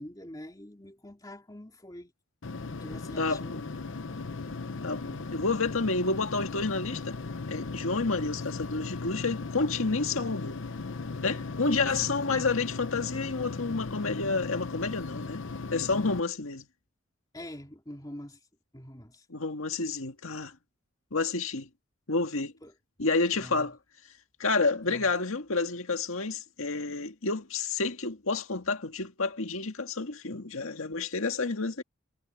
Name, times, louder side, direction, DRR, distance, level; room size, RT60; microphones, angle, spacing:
voice 1, 0.0-2.1 2.7-3.6 11.6-12.0 17.3-18.4 18.7-19.2 22.6-22.7 23.3-23.7 24.9-25.1, left 1 dB, 15° left, 2.9 m, -44 dB
sound 1, 2.4-16.2, left 3 dB, 65° left, 0.8 m, -37 dB
voice 2, 3.2-3.7 4.8-7.2 7.5-10.6 11.2-15.4 15.7-16.7 19.3-20.5 21.1-21.7 22.1-22.5 23.0-23.8 24.4-31.8, left 3 dB, 80° left, 1.9 m, -29 dB
head